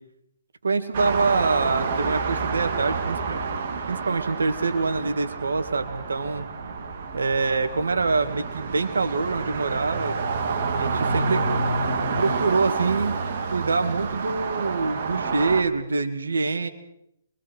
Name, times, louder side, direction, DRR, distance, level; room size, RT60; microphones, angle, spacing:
voice 1, 0.6-3.4 3.9-6.5 7.1-10.1 10.7-11.5 12.2-13.2 13.5-16.7, right 4 dB, 90° right, 8 dB, 2.3 m, -25 dB
sound 1, 0.9-15.6, right 4 dB, 50° right, 2.7 m, -28 dB
28.0 x 23.5 x 4.7 m, 0.77 s
hypercardioid pair, 150°, 0 cm